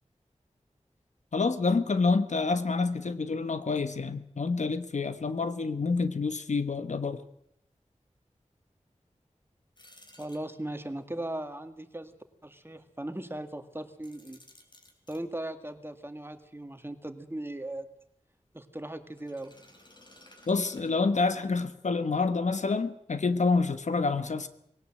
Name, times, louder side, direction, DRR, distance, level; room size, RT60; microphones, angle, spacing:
voice 1, 1.3-7.2 20.5-24.5, left 4 dB, 75° left, 11 dB, 1.2 m, -28 dB
sound 1, 9.8-10.9 13.9-15.2 19.1-21.4, left 1 dB, 40° left, 4.3 m, -56 dB
voice 2, 10.2-12.2 12.4-14.4 15.1-17.9 18.5-19.6, right 1 dB, 20° right, 8 dB, 2.0 m, -38 dB
19.5 x 17.5 x 7.8 m, 0.74 s
wide cardioid pair, 55°, 12 cm